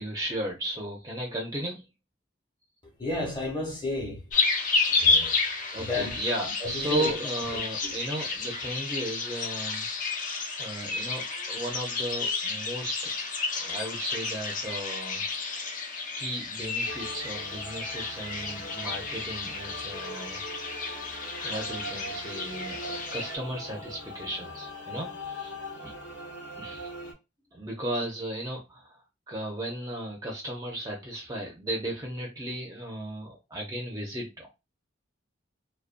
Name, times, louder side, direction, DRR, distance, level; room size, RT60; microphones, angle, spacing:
voice 1, 0.0-1.9 5.7-9.9 10.6-13.0 13.5-15.3 16.2-20.4 21.4-25.9 26.6-26.9 27.5-29.0 29.3-34.5, right 1 dB, 20° right, 0.5 m, -35 dB
voice 2, 3.0-4.3 4.9-5.3 5.8-6.2 6.6-7.1 7.8-7.9, left 2 dB, 25° left, 0.9 m, -32 dB
sound 1, 4.3-23.4, left 4 dB, 40° left, 0.4 m, -31 dB
sound 2, 16.8-27.1, equal, 65° left, 0.9 m, -41 dB
2.4 x 2.2 x 2.4 m
head